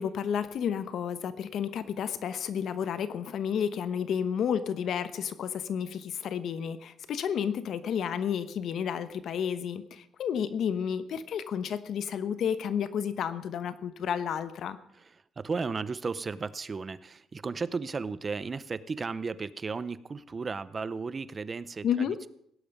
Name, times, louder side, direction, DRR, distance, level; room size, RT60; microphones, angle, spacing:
voice 1, 0.0-14.8 21.8-22.2, left 8 dB, 70° left, 13 dB, 1.0 m, -31 dB
voice 2, 14.9-22.3, right 4 dB, 35° right, 17 dB, 0.7 m, -35 dB
17.0 x 10.5 x 5.4 m, 0.72 s
cardioid pair, 90°, 0 cm